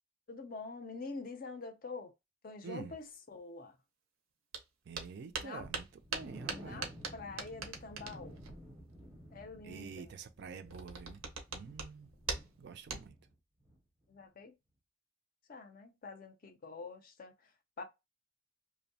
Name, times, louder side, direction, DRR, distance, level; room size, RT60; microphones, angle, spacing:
voice 1, 0.3-2.1 2.4-3.8 5.4-5.7 6.5-8.4 9.3-10.1 14.1-14.5 15.5-17.3 17.8-17.9, left 3 dB, 45° left, 0.4 m, -46 dB
voice 2, 2.6-3.0 4.9-6.9 9.6-11.2 11.5-12.1 12.6-13.1, right 5 dB, 55° right, 0.3 m, -47 dB
sound 1, 4.5-4.6 4.9-8.6 10.6-11.9 12.2-12.6 12.9-13.1, right 5 dB, 90° right, 0.6 m, -41 dB
sound 2, 5.6-13.3 13.6-13.8 14.2-14.3, equal, 10° right, 0.6 m, -53 dB
2.6 x 2.0 x 2.6 m
head